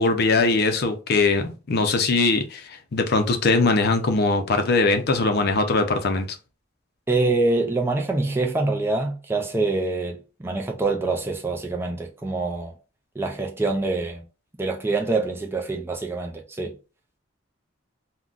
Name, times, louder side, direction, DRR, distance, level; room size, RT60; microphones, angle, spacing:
voice 1, 0.0-6.3, left 3 dB, 50° left, 0.5 m, -21 dB
voice 2, 7.1-12.7 13.2-14.2 14.6-16.7, right 3 dB, 10° right, 0.4 m, -25 dB
3.7 x 2.2 x 2.4 m
head